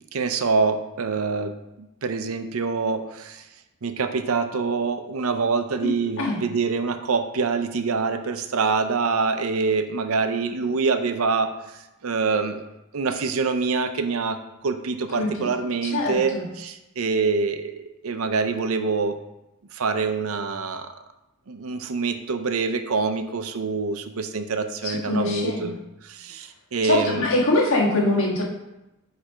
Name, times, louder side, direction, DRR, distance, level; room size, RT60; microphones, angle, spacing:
voice 1, 0.1-3.5 3.8-12.7 12.9-19.2 19.7-20.9 21.5-25.7 26.0-27.3, right 4 dB, 65° right, 9 dB, 0.6 m, -25 dB
voice 2, 15.2-15.5 15.8-16.5 24.8-25.7 26.9-28.4, left 2 dB, 60° left, -3 dB, 1.7 m, -23 dB
8.8 x 3.3 x 5.0 m, 0.95 s
head